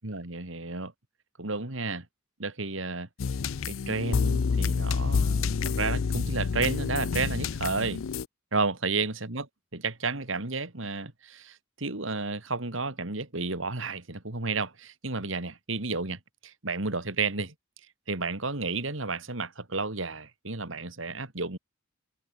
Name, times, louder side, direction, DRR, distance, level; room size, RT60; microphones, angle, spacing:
voice 1, 0.0-0.9 1.4-2.1 2.4-3.1 3.7-8.0 8.5-17.5 18.1-21.6, right 3 dB, 70° right, 2.7 m, -32 dB
sound 1, 3.2-8.3, left 5 dB, 75° left, 0.5 m, -28 dB
head